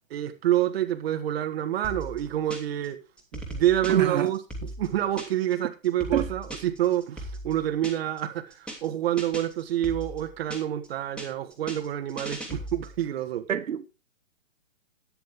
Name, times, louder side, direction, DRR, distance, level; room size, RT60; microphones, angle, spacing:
voice 1, 0.1-3.0 3.3-13.5, right 12 dB, 50° right, 1.7 m, -27 dB
sound 1, 1.8-2.9 3.2-5.5 5.8-8.2 8.5-8.9 9.2-10.9 11.2-13.0, right 1 dB, 5° left, 2.9 m, -38 dB
voice 2, 3.9-4.3 6.1-6.2 13.5-13.9, right 8 dB, 80° right, 1.7 m, -26 dB
13.5 x 10.5 x 3.6 m
hypercardioid pair, 150°, 39 cm